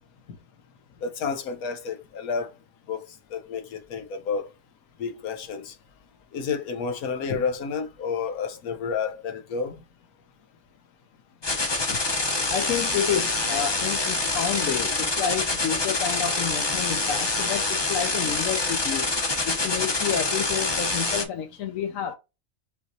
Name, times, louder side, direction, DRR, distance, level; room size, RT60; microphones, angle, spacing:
voice 1, 1.0-2.5 2.9-3.0 3.3-4.5 5.0-5.7 6.3-9.7 11.9-12.0, left 5 dB, 90° left, 1.3 m, -30 dB
sound 1, 11.4-21.2, left 3 dB, 25° left, 0.7 m, -26 dB
voice 2, 12.5-19.1 19.4-22.1, left 8 dB, 70° left, 1.0 m, -29 dB
5.4 x 3.0 x 2.7 m
omnidirectional pair, 1.5 m